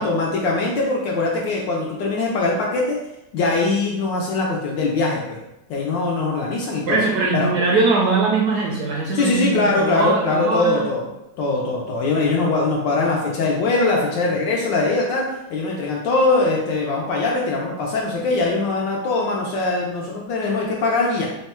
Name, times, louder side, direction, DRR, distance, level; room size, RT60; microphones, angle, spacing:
voice 1, 0.0-3.0 3.3-5.4 5.7-7.0 7.3-7.5 9.1-11.1 11.4-15.2 15.5-21.3, left 3 dB, 75° left, -2 dB, 1.2 m, -21 dB
voice 2, 6.9-10.8, right 3 dB, 70° right, -2 dB, 0.9 m, -21 dB
3.5 x 2.2 x 4.1 m, 0.89 s
omnidirectional pair, 2.2 m